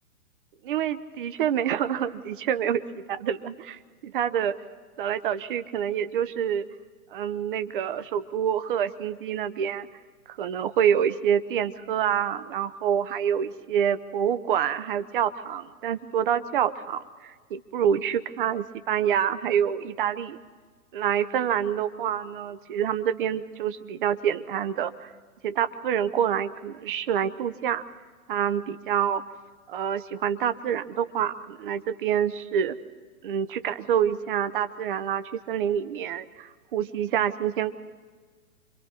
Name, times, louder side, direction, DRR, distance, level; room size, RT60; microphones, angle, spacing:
voice 1, 0.6-4.6 5.0-6.7 7.1-9.9 10.3-20.4 20.9-25.1 25.4-27.8 28.3-29.2 29.7-32.8 33.2-37.7, right 9 dB, 35° right, 12 dB, 0.9 m, -27 dB
27.0 x 24.5 x 4.3 m, 1.5 s
figure-of-eight pair, 120°, 44 cm